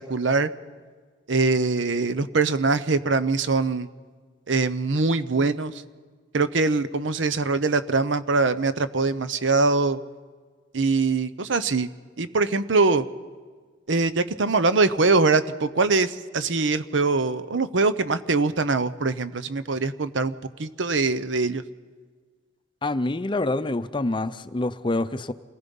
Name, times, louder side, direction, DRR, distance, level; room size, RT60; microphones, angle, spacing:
voice 1, 0.1-0.5 1.3-3.9 4.5-5.7 6.3-10.0 10.7-11.9 12.2-13.1 13.9-21.6, right 3 dB, 80° right, 13 dB, 0.9 m, -23 dB
voice 2, 22.8-25.3, left 2 dB, 25° left, 12 dB, 0.6 m, -26 dB
27.5 x 19.0 x 5.5 m, 1.5 s
head